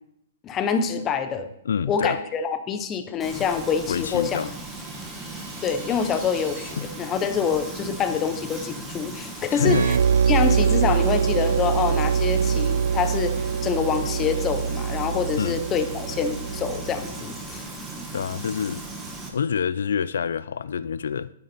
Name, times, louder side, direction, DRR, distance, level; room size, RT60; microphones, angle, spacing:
voice 1, 0.4-1.5 1.9-4.4 5.6-10.0 10.3-17.7, left 6 dB, 15° left, 0.6 m, -26 dB
voice 2, 1.6-2.2 3.9-4.5 6.8-6.9 9.5-9.9 15.4-15.6 18.1-18.8 19.3-21.3, left 7 dB, 75° left, 0.3 m, -26 dB
Frying (food), 3.2-19.3, right 2 dB, 5° right, 1.0 m, -37 dB
sound 1, 4.1-6.7, right 3 dB, 30° right, 2.9 m, -46 dB
sound 2, 9.6-17.1, right 7 dB, 90° right, 0.3 m, -23 dB
9.6 x 8.6 x 4.1 m
hypercardioid pair, 175°, 0 cm